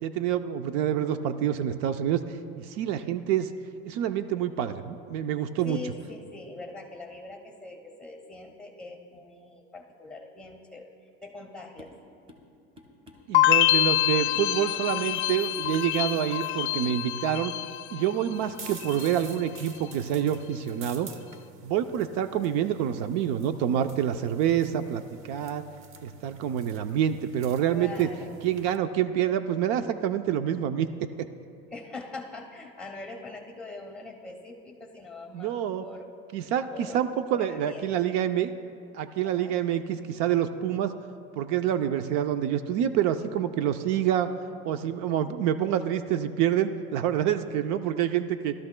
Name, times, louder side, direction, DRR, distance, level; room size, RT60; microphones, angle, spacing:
voice 1, 0.0-2.2 2.6-3.5 3.8-5.8 13.3-17.5 17.9-21.1 21.6-25.6 26.0-28.1 28.4-31.3 35.3-35.8 36.3-38.5 38.9-41.0 41.4-44.3 44.6-48.5, right 10 dB, 70° right, 10 dB, 0.6 m, -27 dB
voice 2, 5.6-10.9 11.2-11.9 27.7-28.4 31.7-36.1 36.7-38.2 39.2-39.6, left 2 dB, 5° left, 1 dB, 1.7 m, -42 dB
sound 1, 11.8-12.0 12.3-12.5 12.8-13.8 14.0-14.6 14.8-15.1 15.3-15.9 16.1-16.3 16.6-16.8, left 2 dB, 20° right, 1.6 m, -52 dB
sound 2, 13.3-18.4 18.7-19.3, left 16 dB, 40° left, 0.6 m, -26 dB
sound 3, 18.3-28.8, right 4 dB, 45° right, 0.9 m, -49 dB
19.5 x 13.0 x 2.2 m, 2.4 s
cardioid pair, 130°, 29 cm